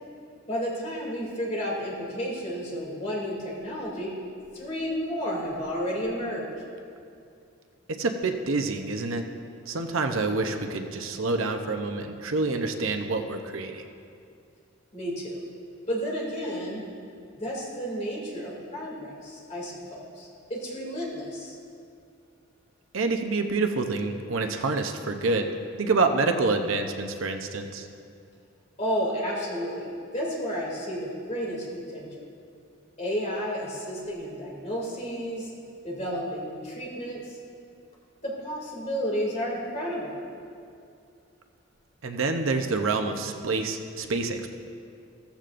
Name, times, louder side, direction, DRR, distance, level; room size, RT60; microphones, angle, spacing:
voice 1, 0.5-4.1 4.5-6.5 14.9-15.4 15.9-16.8 17.4-21.6 28.8-32.1 33.0-35.5 35.8-37.3 38.2-40.1, equal, 30° left, -4 dB, 2.7 m, -32 dB
voice 2, 7.9-9.3 9.7-13.8 22.9-25.5 25.8-27.9 42.0-44.5, right 3 dB, 75° right, 5 dB, 0.7 m, -27 dB
15.0 x 14.0 x 2.6 m, 2.5 s
head